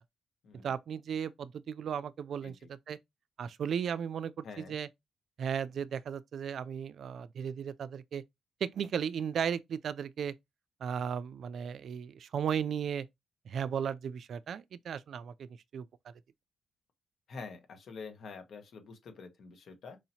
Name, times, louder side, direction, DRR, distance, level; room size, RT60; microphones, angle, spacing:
voice 1, 0.5-3.0 3.4-4.9 5.4-8.2 8.6-10.3 10.8-13.1 13.5-15.3 15.7-15.8, right 8 dB, 65° right, 0.3 m, -35 dB
voice 2, 4.4-4.8 17.3-20.0, left 4 dB, 70° left, 1.2 m, -47 dB
4.7 x 2.8 x 2.7 m
cardioid pair, 80°, 0 cm